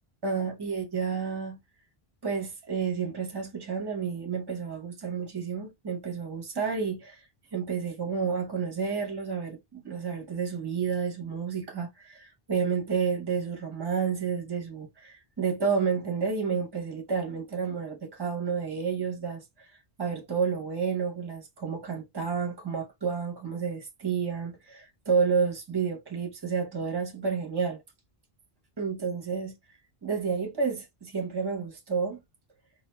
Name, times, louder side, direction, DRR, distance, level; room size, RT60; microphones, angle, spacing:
voice 1, 0.2-1.6 2.2-7.3 7.5-27.8 28.8-29.6 30.0-32.2, right 6 dB, 25° right, 0.9 m, -30 dB
4.4 x 2.5 x 2.2 m
omnidirectional pair, 1.1 m